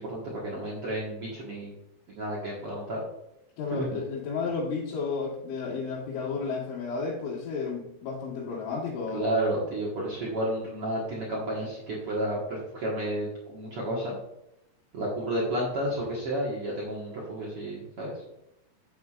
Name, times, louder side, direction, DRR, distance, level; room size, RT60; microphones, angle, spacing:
voice 1, 0.0-1.7 2.1-3.0 3.7-4.0 9.1-14.2 14.9-18.3, right 1 dB, 85° right, -5 dB, 1.2 m, -31 dB
voice 2, 3.6-9.4, left 4 dB, 80° left, -7 dB, 3.9 m, -32 dB
10.5 x 8.2 x 2.5 m, 0.84 s
omnidirectional pair, 5.4 m